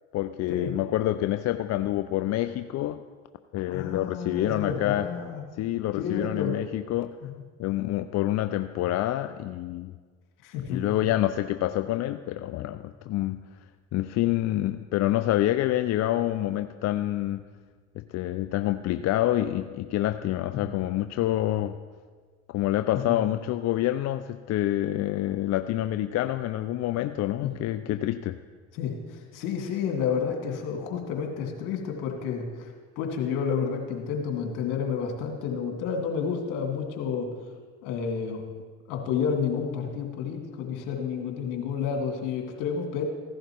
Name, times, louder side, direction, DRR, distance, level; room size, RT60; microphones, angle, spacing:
voice 1, 0.1-3.0 3.5-5.1 5.6-7.2 7.6-9.9 10.7-13.4 13.9-17.4 18.0-21.8 22.5-28.4, left 14 dB, 50° left, 10 dB, 0.5 m, -27 dB
voice 2, 3.7-5.4 6.0-6.6 7.2-7.3 10.4-10.8 20.5-20.7 23.0-23.2 27.4-27.5 28.7-37.3 37.8-38.4 38.9-43.0, left 6 dB, 70° left, 1 dB, 2.3 m, -30 dB
15.5 x 11.5 x 3.1 m, 1.5 s
hypercardioid pair, 75°, 34 cm